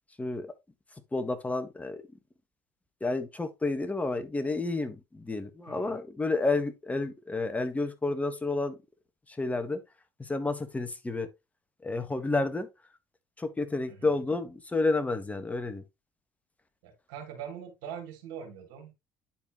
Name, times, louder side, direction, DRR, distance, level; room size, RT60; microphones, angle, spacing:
voice 1, 0.2-0.5 1.1-2.0 3.0-8.7 9.3-9.8 10.2-11.3 11.8-12.7 13.4-15.8, left 3 dB, 15° left, 1.6 m, -30 dB
voice 2, 5.7-6.0 13.9-14.1 16.8-18.9, right 8 dB, 75° right, 2.6 m, -42 dB
10.5 x 4.4 x 3.1 m
hypercardioid pair, 65°, 8 cm